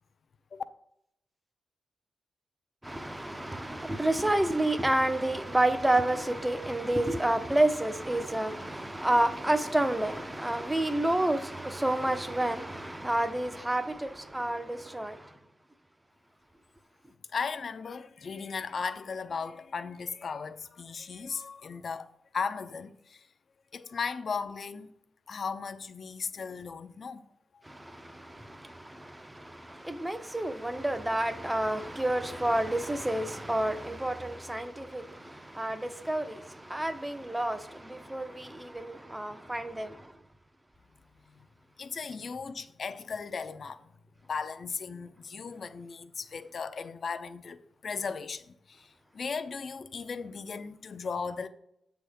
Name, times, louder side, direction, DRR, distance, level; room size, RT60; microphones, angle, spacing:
voice 1, 2.8-15.3 27.7-40.1, right 1 dB, 10° right, 0.5 m, -29 dB
voice 2, 17.3-22.1 22.3-23.3 23.7-24.9 25.3-27.3 27.5-27.6 41.8-43.9 44.3-51.5, left 5 dB, 50° left, 0.4 m, -36 dB
7.5 x 3.4 x 6.2 m
cardioid pair, 105°, 0 cm